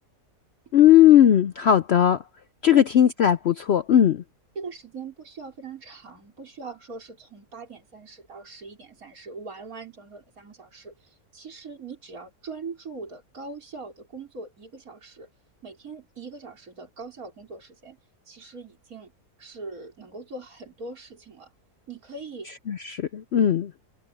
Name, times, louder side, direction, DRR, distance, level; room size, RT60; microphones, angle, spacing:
voice 1, 0.7-2.2 2.6-4.2 22.7-23.7, left 10 dB, 70° left, 0.6 m, -18 dB
voice 2, 4.5-15.3 15.6-18.0 18.2-19.1 19.4-21.5 21.9-22.5, right 4 dB, 60° right, 4.9 m, -41 dB
omnidirectional pair, 1.7 m